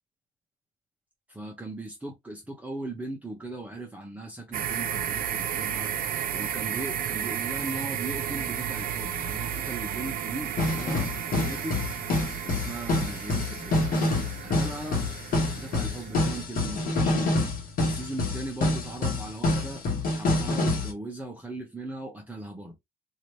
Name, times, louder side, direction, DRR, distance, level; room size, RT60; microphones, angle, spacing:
voice 1, 1.3-11.8 12.4-13.8 14.4-15.0 15.5-17.5 17.8-22.8, right 2 dB, 10° right, 0.9 m, -38 dB
sound 1, 4.5-16.4, right 9 dB, 55° right, 0.6 m, -33 dB
sound 2, 8.3-8.4 10.6-20.9, left 2 dB, 55° left, 1.3 m, -27 dB
2.9 x 2.7 x 3.2 m
cardioid pair, 110°, 17 cm